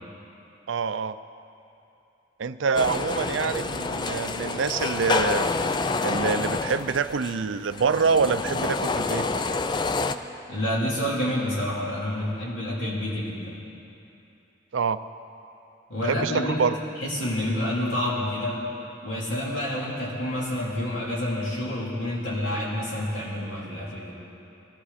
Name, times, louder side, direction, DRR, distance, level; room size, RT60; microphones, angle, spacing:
voice 1, 0.7-1.2 2.4-5.5 6.0-9.3 14.7-15.0 16.0-16.8, right 5 dB, 80° right, 12 dB, 0.5 m, -26 dB
sound 1, 2.7-10.1, left 3 dB, 25° left, 0.4 m, -28 dB
voice 2, 10.5-13.6 15.9-16.6 17.0-18.6 19.0-24.1, left 1 dB, 90° left, -6 dB, 3.9 m, -28 dB
22.5 x 13.5 x 4.2 m, 2.8 s
head